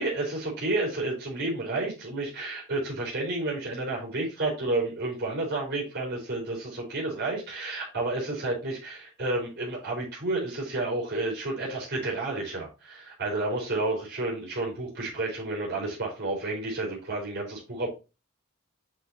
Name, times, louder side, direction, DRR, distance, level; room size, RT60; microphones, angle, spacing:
voice 1, 0.0-17.9, right 2 dB, 50° right, -2 dB, 4.4 m, -31 dB
8.3 x 5.7 x 2.8 m, 0.29 s
head